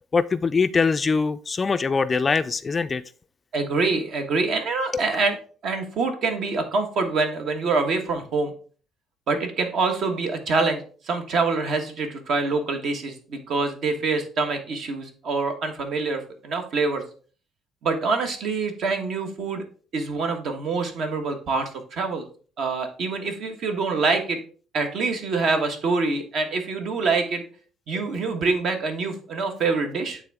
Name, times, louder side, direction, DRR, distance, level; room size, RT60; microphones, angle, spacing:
voice 1, 0.1-3.0 4.9-5.0 27.9-28.0, left 4 dB, 25° left, 0.3 m, -23 dB
voice 2, 3.5-5.4 5.6-8.5 9.3-17.0 17.8-19.6 19.9-22.2 22.6-24.4 24.7-27.4 27.9-30.2, right 4 dB, 60° right, 1.4 m, -25 dB
8.9 x 3.7 x 3.5 m
cardioid pair, 115°, 0 cm